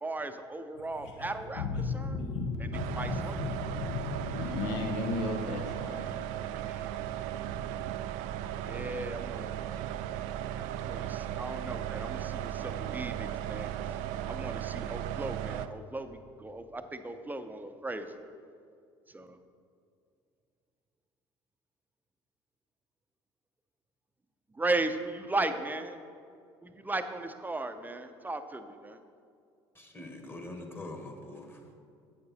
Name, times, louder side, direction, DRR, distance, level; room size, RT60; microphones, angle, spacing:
voice 1, 0.0-1.7 1.9-2.2 2.6-3.4 3.7-3.8 6.5-6.9 8.6-9.5 10.8-13.9 14.3-18.3 19.1-19.4 24.5-26.0 26.6-29.0, right 2 dB, 15° right, 8 dB, 0.6 m, -36 dB
voice 2, 1.0-6.8 7.1-7.9, left 3 dB, 75° left, 1 dB, 0.9 m, -35 dB
sound 1, 2.7-15.7, right 11 dB, 70° right, 0.4 m, -36 dB
voice 3, 29.7-31.6, left 2 dB, 15° left, 3 dB, 1.4 m, -43 dB
8.6 x 6.7 x 4.1 m, 2.4 s
hypercardioid pair, 65°, 13 cm